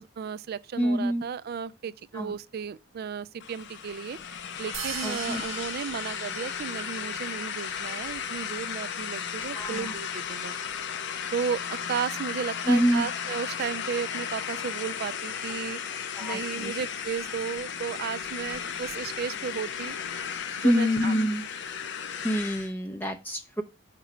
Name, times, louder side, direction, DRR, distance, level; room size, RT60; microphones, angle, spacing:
voice 1, 0.0-4.2 4.6-10.6 11.3-15.8 16.2-20.0 20.6-21.1, right 7 dB, 50° right, 0.3 m, -34 dB
voice 2, 0.8-1.2 2.1-2.3 5.0-5.4 9.6-9.9 12.7-13.1 16.2-16.8 20.6-21.4 22.2-23.6, equal, 10° left, 0.5 m, -26 dB
sound 1, 3.4-22.7, left 7 dB, 60° left, 0.6 m, -35 dB
sound 2, 4.7-7.0, right 9 dB, 80° right, 0.8 m, -39 dB
6.6 x 3.1 x 5.8 m
head